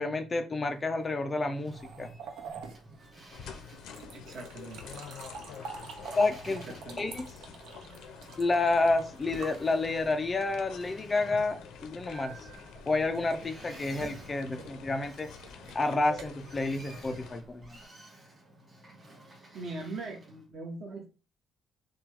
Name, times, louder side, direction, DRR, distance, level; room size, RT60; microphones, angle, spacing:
voice 1, 0.0-2.1 6.2-6.6 7.0-7.3 8.4-12.3 12.9-15.3 15.7-17.8, left 3 dB, 20° left, 7 dB, 0.4 m, -29 dB
Boat Water vehicle, 0.6-20.4, right 1 dB, 20° right, 1.8 m, -53 dB
sound 1, 1.7-10.3 12.1-17.8, right 5 dB, 70° right, 0.9 m, -46 dB
sound 2, 3.3-17.4, left 7 dB, 85° left, 0.7 m, -48 dB
voice 2, 4.1-4.8 6.4-7.1 18.9-19.0 19.5-21.1, right 2 dB, 45° right, 1 dB, 1.3 m, -41 dB
5.8 x 2.3 x 3.5 m, 0.33 s
cardioid pair, 165°, 0 cm